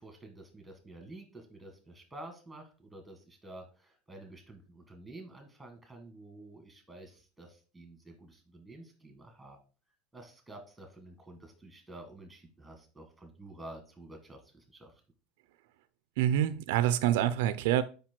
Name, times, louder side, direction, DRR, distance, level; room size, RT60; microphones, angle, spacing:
voice 1, 0.0-9.6 10.1-14.9, right 1 dB, 5° right, 4 dB, 1.6 m, -50 dB
voice 2, 16.2-17.8, right 11 dB, 75° right, 14 dB, 0.5 m, -26 dB
5.9 x 5.2 x 4.4 m, 0.35 s
cardioid pair, 165°, 0 cm